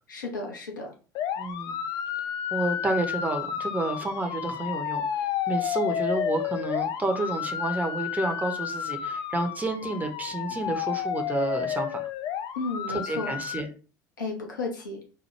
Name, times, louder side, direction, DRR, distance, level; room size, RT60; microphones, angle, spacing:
voice 1, 0.1-0.9 12.5-13.4 14.2-15.0, left 3 dB, 75° left, 1 dB, 0.8 m, -33 dB
sound 1, 1.2-13.6, left 9 dB, 40° left, 0.3 m, -31 dB
voice 2, 1.4-1.8 2.5-5.0 5.5-12.1 12.9-13.7, right 2 dB, 15° right, 5 dB, 0.7 m, -30 dB
4.4 x 2.2 x 3.1 m, 0.37 s
figure-of-eight pair, 65°, 11 cm